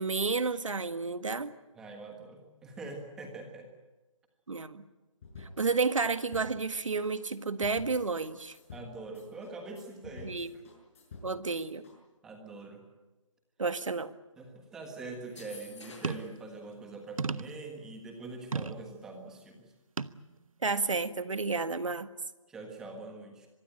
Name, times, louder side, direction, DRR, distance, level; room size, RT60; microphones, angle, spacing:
voice 1, 0.0-1.5 4.5-4.8 5.4-8.6 10.2-10.5 11.2-11.8 13.6-14.1 20.6-22.1, right 4 dB, 70° right, 11 dB, 1.8 m, -31 dB
voice 2, 1.8-3.7 8.7-10.4 12.2-12.8 14.4-19.7 22.5-23.5, right 3 dB, 5° right, 3 dB, 1.5 m, -44 dB
sound 1, 5.2-11.9, left 3 dB, 25° left, 6.8 m, -49 dB
sound 2, 15.2-16.4, left 3 dB, 60° left, 7.5 m, -50 dB
sound 3, 16.0-16.4 17.2-17.7 18.5-18.9 20.0-20.2 20.9-21.0, right 4 dB, 85° right, 1.1 m, -34 dB
24.5 x 21.0 x 8.9 m, 1.1 s
hypercardioid pair, 175°, 17 cm